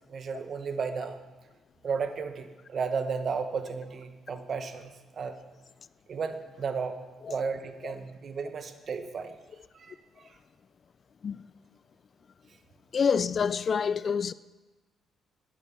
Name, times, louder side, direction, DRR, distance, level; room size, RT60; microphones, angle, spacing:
voice 1, 0.1-1.2 1.8-5.4 6.1-7.0 7.3-9.3 9.7-9.9, right 5 dB, 50° right, 1.1 m, -33 dB
voice 2, 12.9-14.3, left 6 dB, 45° left, 0.3 m, -26 dB
11.0 x 10.5 x 5.9 m
cardioid pair, 90°, 0 cm